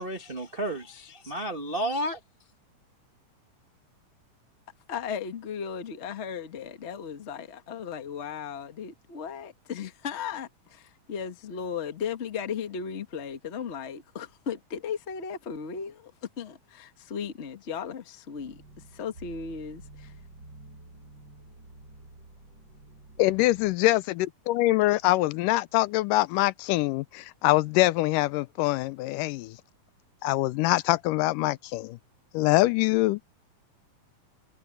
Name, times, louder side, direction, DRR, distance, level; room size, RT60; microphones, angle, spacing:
voice 1, 0.0-2.2, right 1 dB, 75° right, 0.5 m, -32 dB
voice 2, 4.9-16.1 16.4-18.6 18.9-20.1, left 7 dB, 60° left, 0.7 m, -36 dB
sound 1, 18.4-23.8, right 2 dB, 30° right, 7.0 m, -50 dB
voice 3, 23.2-29.6 30.2-32.0 32.3-33.2, left 18 dB, 85° left, 2.2 m, -24 dB
omnidirectional pair, 3.8 m